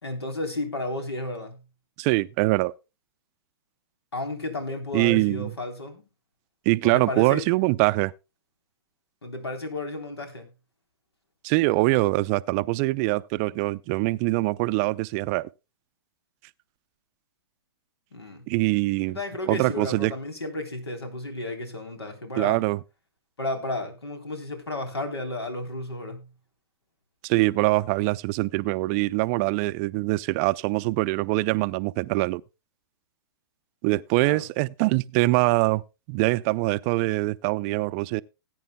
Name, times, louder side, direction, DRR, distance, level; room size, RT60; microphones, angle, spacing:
voice 1, 0.0-1.6 4.1-6.0 6.8-7.5 9.2-10.5 18.1-18.4 19.1-22.6 23.4-26.3 34.2-34.5, left 2 dB, 90° left, 3.5 m, -33 dB
voice 2, 2.0-2.7 4.9-5.5 6.7-8.1 11.4-15.5 18.5-19.2 19.4-20.1 22.4-22.8 27.2-32.4 33.8-35.8 36.1-38.2, right 22 dB, 35° right, 0.5 m, -23 dB
19.0 x 9.4 x 2.2 m
hypercardioid pair, 120°, 13 cm